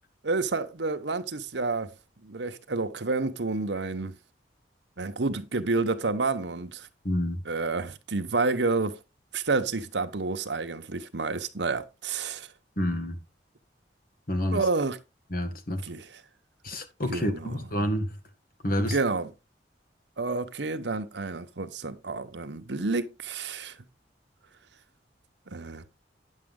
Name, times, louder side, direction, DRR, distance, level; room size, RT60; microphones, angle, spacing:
voice 1, 0.2-1.9 2.2-4.1 5.0-6.9 7.5-9.0 9.3-12.5 14.5-15.0 15.8-16.1 17.1-17.6 18.8-19.3 20.2-23.8 25.5-25.8, right 3 dB, 80° right, 1.0 m, -29 dB
voice 2, 7.0-7.4 12.8-13.2 14.3-14.6 15.3-15.8 16.6-18.2 18.6-19.0, equal, 55° left, 2.0 m, -28 dB
9.7 x 7.5 x 3.8 m
head